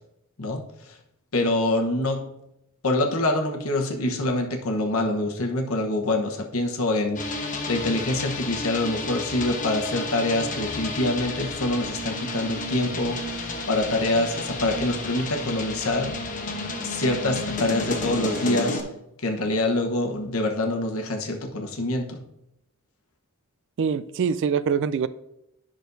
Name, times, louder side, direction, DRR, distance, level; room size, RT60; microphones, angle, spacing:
voice 1, 0.4-1.0 1.3-2.3 2.8-16.2 16.8-18.8 19.2-22.2, left 2 dB, 70° left, 2 dB, 1.1 m, -25 dB
sound 1, 7.1-18.8, left 2 dB, 40° left, 1.0 m, -31 dB
voice 2, 23.8-25.1, right 6 dB, 60° right, 15 dB, 0.3 m, -24 dB
10.0 x 6.1 x 2.7 m, 0.83 s
head